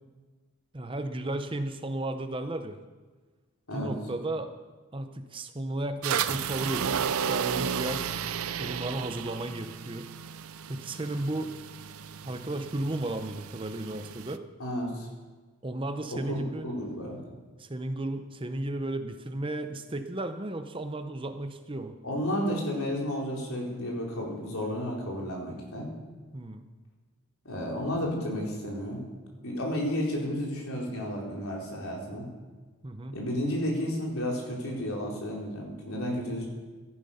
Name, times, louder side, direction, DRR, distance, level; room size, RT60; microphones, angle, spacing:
voice 1, 0.7-2.8 3.7-4.5 4.9-7.0 7.3-8.1 8.6-10.1 10.7-11.5 12.3-14.4 15.6-16.7 17.6-21.9 26.3-26.7 32.8-33.2 36.4-36.5, right 1 dB, 25° right, 8 dB, 0.7 m, -34 dB
sound 1, 6.0-14.4, right 7 dB, 85° right, 0.5 m, -33 dB
voice 2, 14.6-15.1 16.1-17.2 22.0-25.9 27.4-29.0 29.4-32.3 33.1-36.5, equal, 80° left, -2 dB, 3.7 m, -32 dB
14.0 x 10.0 x 5.7 m, 1.4 s
head